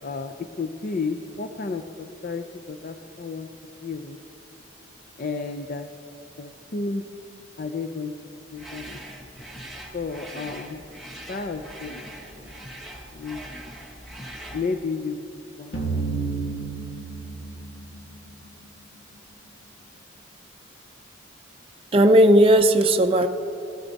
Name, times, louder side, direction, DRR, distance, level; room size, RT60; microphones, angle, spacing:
voice 1, 0.0-3.5 3.8-4.2 5.2-5.9 6.4-7.0 7.6-8.1 8.5-9.0 9.9-10.8 11.3-12.0 12.3-12.5 13.1-13.6 14.5-15.8, left 4 dB, 45° left, 7 dB, 0.5 m, -32 dB
sound 1, 8.6-14.7, right 1 dB, ahead, 1.2 m, -41 dB
sound 2, 15.7-18.7, right 4 dB, 75° left, 1.6 m, -31 dB
voice 2, 21.9-23.3, right 1 dB, 25° right, 6 dB, 0.5 m, -16 dB
17.0 x 12.5 x 4.0 m, 2.9 s
head